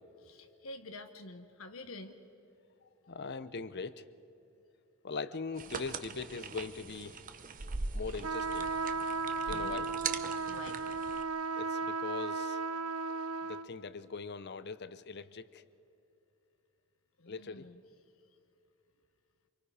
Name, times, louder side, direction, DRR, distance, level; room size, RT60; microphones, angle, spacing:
voice 1, 0.2-2.2 9.5-9.9 10.5-10.8 17.2-17.8, left 2 dB, 70° left, 7 dB, 1.2 m, -48 dB
voice 2, 3.0-4.0 5.0-7.2 7.9-8.7 9.5-9.9 11.6-12.6 13.5-15.6 17.3-17.7, left 4 dB, 50° left, 14 dB, 0.7 m, -41 dB
sound 1, 5.6-11.2, right 4 dB, 40° right, 0.9 m, -41 dB
sound 2, 8.2-13.7, right 4 dB, 85° right, 0.7 m, -35 dB
26.5 x 24.0 x 5.0 m, 2.9 s
head